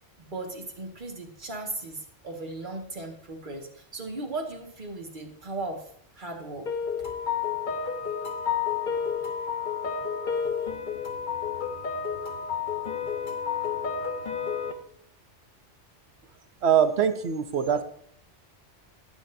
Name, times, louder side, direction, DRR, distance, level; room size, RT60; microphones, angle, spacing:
voice 1, 0.2-5.9 6.2-6.7 17.7-17.8, right 2 dB, 45° right, 1 dB, 2.0 m, -37 dB
sound 1, 6.7-14.7, left 7 dB, 45° left, 1.2 m, -30 dB
voice 2, 16.6-17.8, right 8 dB, 65° right, 11 dB, 1.0 m, -23 dB
17.5 x 7.6 x 2.7 m, 0.64 s
omnidirectional pair, 1.2 m